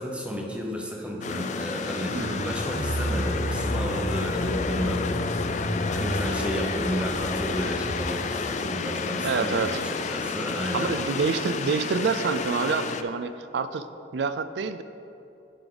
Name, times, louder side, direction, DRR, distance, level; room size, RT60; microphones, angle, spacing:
voice 1, 0.0-10.9, equal, 5° right, -1 dB, 0.9 m, -32 dB
sound 1, 1.2-13.0, left 4 dB, 40° left, 0.3 m, -30 dB
Car, 2.0-8.2 8.5-8.6, equal, 70° left, 1.3 m, -32 dB
voice 2, 2.1-2.5 9.2-9.8 10.7-13.9 14.1-14.8, right 5 dB, 70° right, 12 dB, 0.4 m, -27 dB
10.5 x 5.2 x 3.8 m, 2.8 s
head